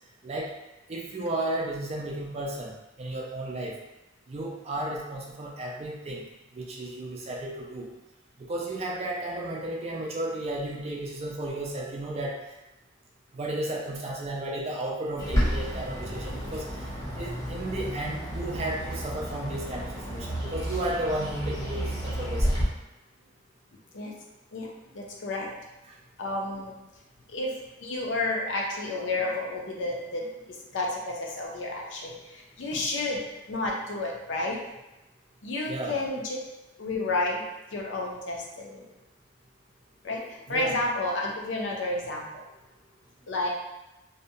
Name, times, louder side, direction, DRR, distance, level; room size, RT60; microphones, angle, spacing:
voice 1, 0.9-3.8 4.3-6.2 6.5-7.9 8.4-12.4 13.3-16.9 17.2-22.5 25.9-26.0 32.7-32.8 35.7-36.0 40.5-40.8, right 1 dB, 30° right, -2 dB, 0.3 m, -33 dB
Bird, 15.2-22.6, equal, 15° left, 0.6 m, -31 dB
voice 2, 24.9-25.5 26.2-26.8 27.3-27.5 27.8-33.2 33.5-34.6 35.4-36.4 36.8-37.4 37.7-38.8 40.0-42.4 43.3-43.5, left 2 dB, 65° left, -1 dB, 0.5 m, -31 dB
2.7 x 2.1 x 2.6 m, 1.0 s
head